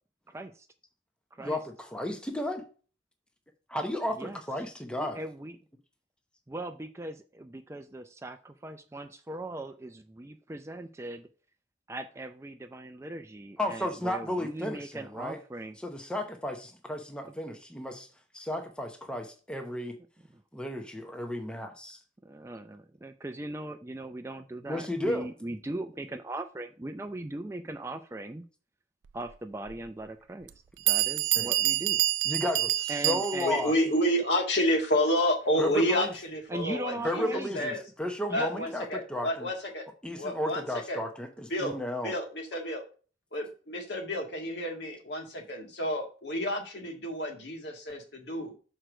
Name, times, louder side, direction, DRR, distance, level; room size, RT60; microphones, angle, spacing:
voice 1, 0.3-0.7 1.3-1.6 4.1-4.4 4.9-5.6 6.5-11.3 11.9-15.8 17.3-17.4 20.3-20.4 22.2-28.4 29.1-30.5 30.9-32.0 32.9-33.9 36.5-37.8 38.3-38.7, right 2 dB, 15° right, 8 dB, 0.4 m, -39 dB
voice 2, 1.4-2.6 3.7-5.2 13.6-15.4 15.8-18.1 18.3-20.0 20.5-22.0 24.7-25.3 31.4-31.5 32.2-33.7 35.6-36.1 37.0-39.5 40.0-42.1, left 1 dB, 5° left, 4 dB, 0.8 m, -33 dB
Bell, 29.7-29.8 30.5-30.6 30.9-33.7, right 15 dB, 80° right, 0.4 m, -27 dB
voice 3, 33.4-37.8 38.3-39.8 40.2-41.0 41.5-41.8 42.0-42.8 43.3-48.5, equal, 65° left, 2 dB, 1.8 m, -30 dB
6.5 x 4.5 x 5.0 m, 0.37 s
head